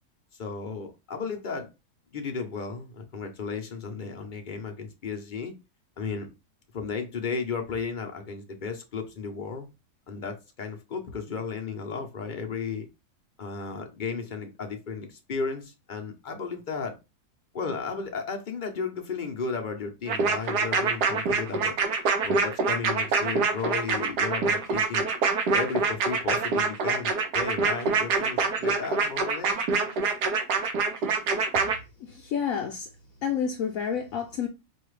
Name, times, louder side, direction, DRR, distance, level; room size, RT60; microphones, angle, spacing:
voice 1, 0.4-1.7 2.1-5.5 6.0-6.3 6.7-9.7 10.1-12.9 13.4-17.0 17.5-21.8 22.2-25.1 25.5-29.5, left 5 dB, 50° left, 0.6 m, -34 dB
sound 1, 20.1-31.8, right 4 dB, 90° right, 1.4 m, -25 dB
voice 2, 32.0-32.9 33.2-34.5, left 7 dB, 65° left, 0.9 m, -29 dB
5.2 x 2.4 x 3.1 m
omnidirectional pair, 1.7 m